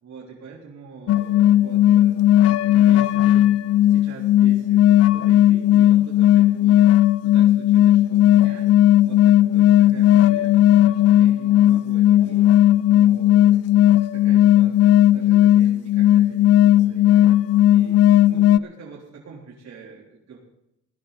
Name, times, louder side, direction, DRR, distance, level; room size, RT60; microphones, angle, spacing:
voice 1, 0.0-6.9 7.2-8.7 9.0-12.5 12.9-13.8 14.1-17.3 17.7-20.4, right 5 dB, 60° right, -4 dB, 3.6 m, -43 dB
sound 1, 1.1-18.6, left 12 dB, 55° left, 0.5 m, -16 dB
18.0 x 12.5 x 4.2 m, 0.85 s
cardioid pair, 90°, 30 cm